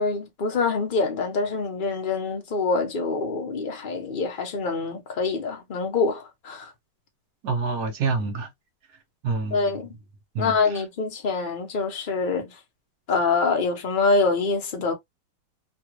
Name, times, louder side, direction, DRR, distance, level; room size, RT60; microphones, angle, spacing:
voice 1, 0.0-6.7 9.5-9.9 10.4-12.5 13.1-14.9, left 4 dB, 40° left, 0.8 m, -25 dB
voice 2, 7.4-8.5 9.2-9.7 10.3-10.8, right 4 dB, 60° right, 1.3 m, -27 dB
3.3 x 2.4 x 2.9 m
omnidirectional pair, 1.9 m